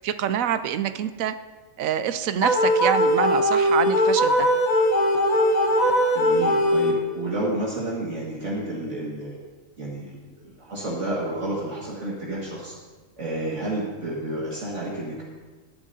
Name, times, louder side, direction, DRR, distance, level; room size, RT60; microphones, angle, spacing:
voice 1, 0.0-1.3 1.8-4.5, right 9 dB, 85° right, 11 dB, 1.0 m, -26 dB
sound 1, 2.4-7.3, equal, 35° left, 1.1 m, -20 dB
voice 2, 6.1-9.4 9.8-12.7 13.2-15.2, right 1 dB, 65° right, -5 dB, 2.2 m, -30 dB
18.0 x 10.0 x 2.7 m, 1.3 s
omnidirectional pair, 1.4 m